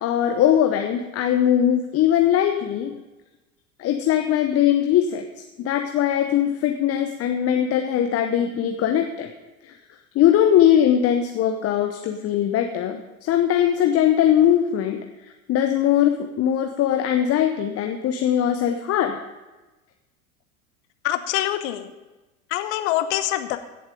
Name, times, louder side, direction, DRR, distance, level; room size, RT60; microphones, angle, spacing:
voice 1, 0.0-2.9 3.8-5.2 5.6-9.3 9.6-9.7 10.1-15.0 15.5-19.2, left 10 dB, 35° left, 5 dB, 0.9 m, -20 dB
voice 2, 21.0-21.9 22.5-23.6, left 14 dB, 50° left, 10 dB, 1.2 m, -25 dB
16.0 x 7.8 x 5.2 m, 1.1 s
figure-of-eight pair, 80°, 43 cm